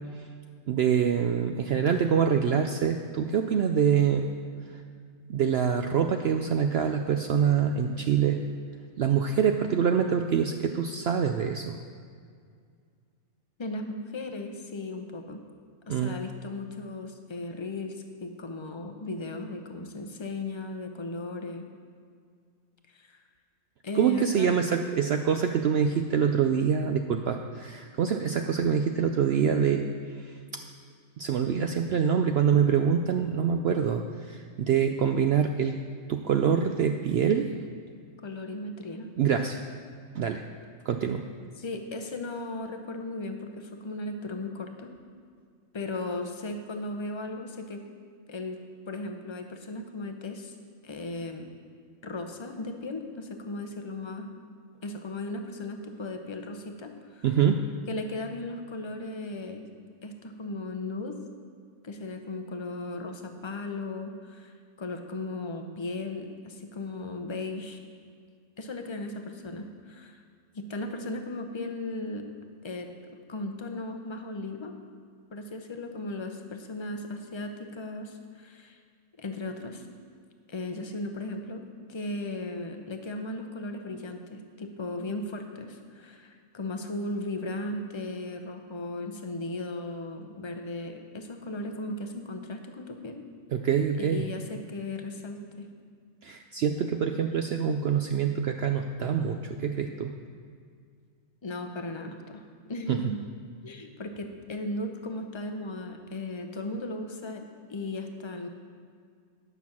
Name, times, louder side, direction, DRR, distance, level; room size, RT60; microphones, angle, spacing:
voice 1, 0.7-4.3 4.7-4.8 5.3-8.4 9.0-11.8 15.9-16.1 24.0-29.9 30.2-30.3 31.2-35.8 36.1-37.5 39.2-39.6 40.1-40.4 40.9-41.2 57.2-57.6 93.5-94.3 96.2-100.1 102.9-103.0, right 7 dB, 65° right, 5 dB, 0.6 m, -25 dB
voice 2, 13.6-15.4 15.9-21.6 22.9-23.2 23.8-24.6 38.2-39.1 41.6-44.9 45.7-47.8 48.3-48.6 48.9-50.5 50.8-51.5 52.0-54.4 54.8-57.3 57.9-59.7 60.0-61.2 61.8-64.5 64.8-67.8 68.6-70.2 70.5-72.2 72.6-74.7 75.3-78.8 79.2-79.9 80.5-81.6 81.9-93.3 94.0-95.7 101.4-102.4 102.7-103.2 103.6-108.5, left 2 dB, 30° left, 5 dB, 0.6 m, -36 dB
11.0 x 6.1 x 7.2 m, 2.1 s
omnidirectional pair, 1.5 m